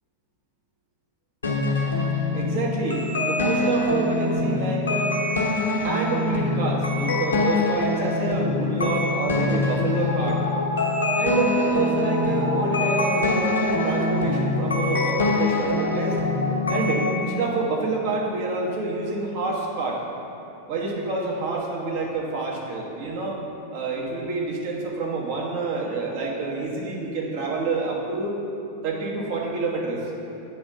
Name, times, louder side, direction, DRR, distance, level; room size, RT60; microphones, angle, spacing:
sound 1, 1.4-17.2, left 2 dB, 70° left, 1.0 m, -24 dB
voice 1, 2.3-5.2 5.8-10.5 11.1-16.2 16.7-20.0 20.7-23.4 23.7-28.4 28.8-30.1, right 3 dB, 50° right, -3 dB, 1.2 m, -28 dB
8.5 x 3.5 x 5.2 m, 2.8 s
figure-of-eight pair, 90°, 0 cm